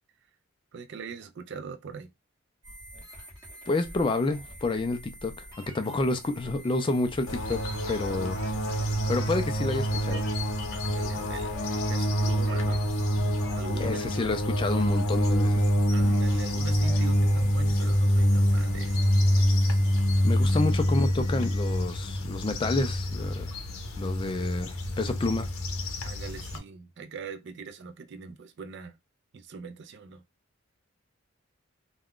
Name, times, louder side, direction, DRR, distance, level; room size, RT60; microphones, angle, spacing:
voice 1, 0.7-2.1 10.7-11.6 11.9-12.9 13.5-14.1 15.9-19.1 26.0-28.9 29.3-30.2, right 5 dB, 55° right, 0.4 m, -41 dB
sound 1, 2.6-21.8, right 1 dB, 20° right, 1.0 m, -47 dB
voice 2, 3.7-5.4 5.7-8.4 9.1-10.3 13.8-15.7 20.2-23.5 24.0-25.5, left 2 dB, 25° left, 0.3 m, -29 dB
sound 2, 7.3-26.6, equal, 90° left, 0.6 m, -26 dB
2.4 x 2.2 x 3.5 m
head